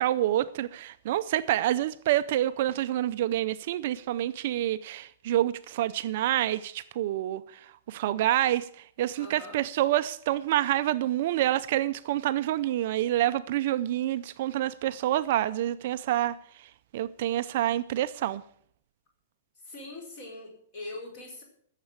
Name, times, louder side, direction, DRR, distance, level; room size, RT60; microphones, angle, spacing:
voice 1, 0.0-7.4 7.9-8.7 9.0-16.4 16.9-18.4, right 13 dB, 40° right, 0.4 m, -27 dB
voice 2, 9.2-9.6 19.6-21.4, left 2 dB, 30° left, 4.5 m, -42 dB
14.5 x 7.4 x 8.6 m
supercardioid pair, 180°, 0 cm